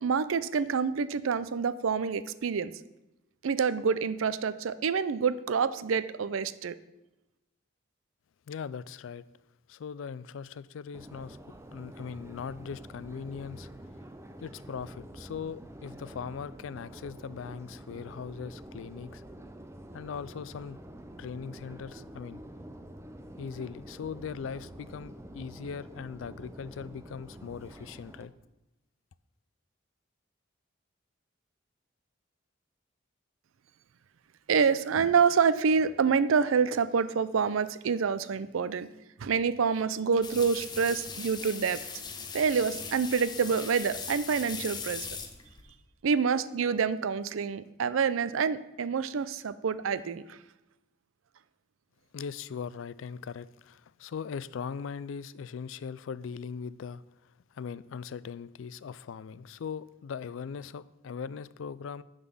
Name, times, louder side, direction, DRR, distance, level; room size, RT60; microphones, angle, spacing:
voice 1, 0.0-2.7 3.4-6.8 34.5-38.9 39.2-41.8 42.3-45.1 46.0-50.4, right 6 dB, 90° right, 0.5 m, -27 dB
voice 2, 8.5-9.2 9.7-11.4 11.7-13.7 14.4-19.2 19.9-20.8 21.2-22.4 23.4-28.3 52.1-57.0 57.5-62.0, left 6 dB, 80° left, 0.4 m, -40 dB
Subway metro underground, 10.9-28.3, right 1 dB, 15° right, 0.5 m, -47 dB
sound 1, 40.2-45.7, left 5 dB, 20° left, 0.7 m, -40 dB
9.6 x 4.0 x 7.0 m
head